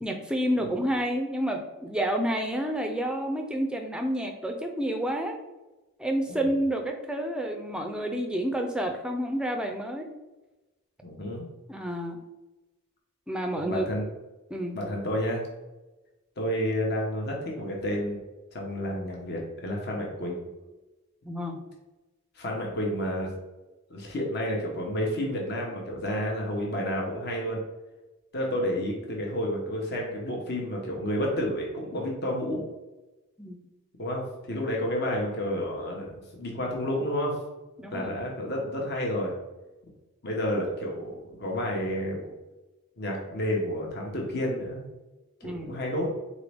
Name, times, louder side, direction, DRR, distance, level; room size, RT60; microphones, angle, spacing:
voice 1, 0.0-5.4 6.0-10.1 11.7-12.2 13.3-13.9 14.5-14.8 21.3-21.6 33.4-33.6 37.8-38.2 45.4-45.8, right 1 dB, 5° right, 3 dB, 0.4 m, -29 dB
voice 2, 11.0-11.5 13.6-14.0 14.7-15.4 16.4-18.2 18.5-20.4 22.3-23.3 23.9-27.6 28.3-32.6 34.0-37.4 37.9-39.3 40.2-42.2 43.0-44.9 45.4-46.1, equal, 50° left, -1 dB, 1.0 m, -30 dB
4.1 x 3.7 x 3.4 m, 1.1 s
head